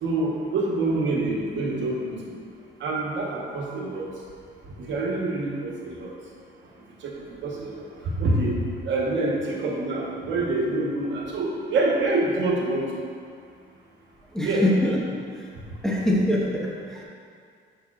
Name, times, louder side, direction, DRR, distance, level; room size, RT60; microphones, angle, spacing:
voice 1, 0.0-2.3 2.8-4.1 4.8-6.1 7.0-7.7 8.0-12.9 14.4-14.6, right 2 dB, 70° right, -3 dB, 1.3 m, -26 dB
voice 2, 14.3-15.0 15.3-15.5 15.8-17.0, equal, ahead, -5 dB, 1.2 m, -24 dB
11.0 x 5.0 x 2.5 m, 2.2 s
cardioid pair, 90°, 20 cm